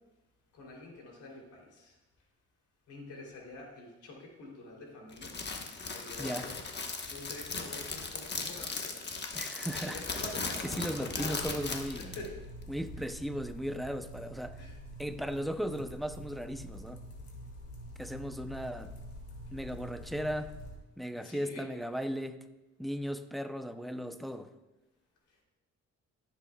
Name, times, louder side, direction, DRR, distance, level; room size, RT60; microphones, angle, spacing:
voice 1, 0.5-1.9 2.9-5.4 5.9-6.6 7.1-9.1 9.7-11.7 12.0-12.4 13.0-13.1 14.6-14.8 21.1-21.7, left 2 dB, 80° left, -1 dB, 3.1 m, -46 dB
Crackle, 5.1-12.3, left 4 dB, 35° left, 1.2 m, -38 dB
voice 2, 9.3-10.2 10.6-12.2 12.7-14.6 15.0-17.0 18.0-18.9 19.5-20.5 21.0-22.4 22.8-24.5, equal, ahead, 9 dB, 0.6 m, -36 dB
sound 1, 11.1-20.8, equal, 60° left, 2.7 m, -47 dB
14.5 x 7.7 x 2.3 m, 1.0 s
cardioid pair, 90°, 30 cm